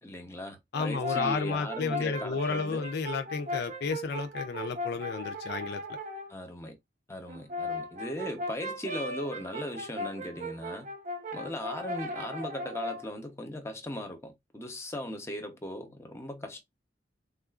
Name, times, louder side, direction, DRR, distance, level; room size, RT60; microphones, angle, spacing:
voice 1, 0.0-2.9 6.3-6.8 7.1-10.9 11.3-16.6, left 1 dB, 15° left, 0.7 m, -38 dB
voice 2, 0.7-5.8, left 4 dB, 65° left, 0.4 m, -32 dB
Brass instrument, 0.7-6.3 7.3-13.1, left 1 dB, 45° right, 0.6 m, -37 dB
3.6 x 2.4 x 2.3 m
head